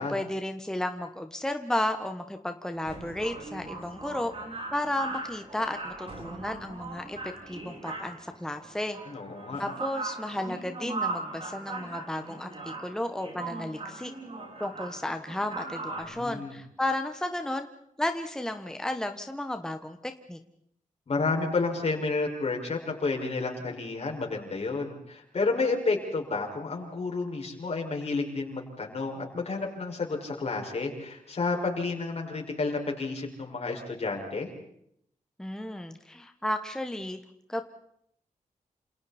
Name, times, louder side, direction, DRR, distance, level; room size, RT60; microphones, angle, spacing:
voice 1, 0.0-4.3 4.7-7.2 7.5-9.0 9.6-14.1 14.6-17.7 18.0-20.4 35.4-37.2 37.5-37.6, left 1 dB, 5° left, 6 dB, 1.2 m, -33 dB
sound 1, 2.7-16.0, right 3 dB, 45° right, 7.9 m, -39 dB
voice 2, 9.1-9.6 16.0-16.6 21.1-34.5, left 3 dB, 50° left, 0 dB, 5.6 m, -31 dB
28.5 x 28.0 x 4.3 m, 0.71 s
wide cardioid pair, 135°, 14 cm